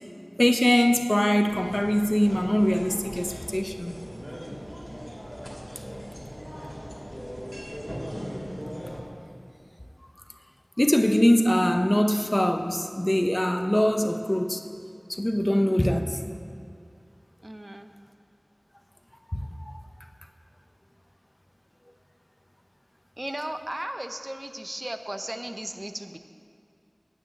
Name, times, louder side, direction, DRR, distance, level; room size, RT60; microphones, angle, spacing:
voice 1, 0.4-3.9 10.8-14.6 15.1-16.3 19.3-19.5, equal, 30° left, 0.7 m, -22 dB
sound 1, 1.5-9.0, equal, 10° right, 2.5 m, -39 dB
voice 2, 17.4-17.9 23.2-26.2, right 1 dB, 40° right, 0.6 m, -36 dB
9.3 x 6.2 x 8.5 m
wide cardioid pair, 40°, 0 cm